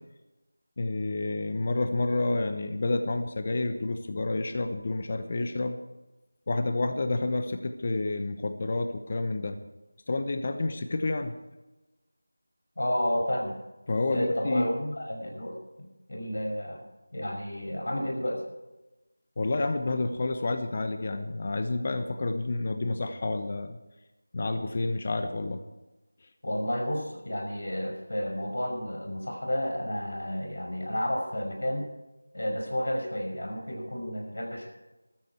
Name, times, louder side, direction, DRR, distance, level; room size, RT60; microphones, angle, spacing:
voice 1, 0.8-5.8 6.5-9.6 10.1-11.3 13.9-14.7 19.4-23.8 24.3-25.6, left 2 dB, 35° left, 8 dB, 1.0 m, -29 dB
voice 2, 12.8-13.6 14.1-16.8 17.1-18.4 26.4-31.9 32.3-34.7, equal, 65° left, 2 dB, 5.8 m, -31 dB
15.0 x 13.5 x 4.7 m, 1.0 s
figure-of-eight pair, 170°, 0 cm